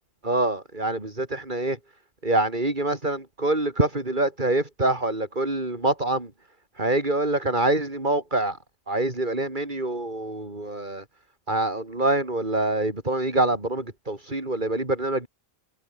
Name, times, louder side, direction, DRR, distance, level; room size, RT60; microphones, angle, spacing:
voice 1, 0.2-1.8 2.2-6.3 6.8-8.6 8.9-11.0 11.5-15.3, right 2 dB, 50° right, 4.3 m, -25 dB
omnidirectional pair, 1.0 m